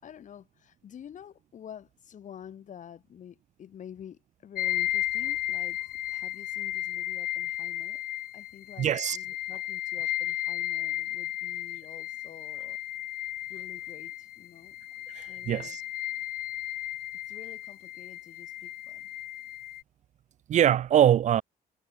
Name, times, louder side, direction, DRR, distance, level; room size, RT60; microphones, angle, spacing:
voice 1, 0.0-8.0 8.3-12.8 13.5-14.8 15.3-15.8 17.3-19.1, left 9 dB, 50° left, 5.8 m, -48 dB
sound 1, 4.5-19.8, left 14 dB, 75° left, 1.8 m, -34 dB
voice 2, 8.8-9.2 15.1-15.8 20.5-21.4, right 10 dB, 50° right, 0.5 m, -23 dB
cardioid pair, 130°, 16 cm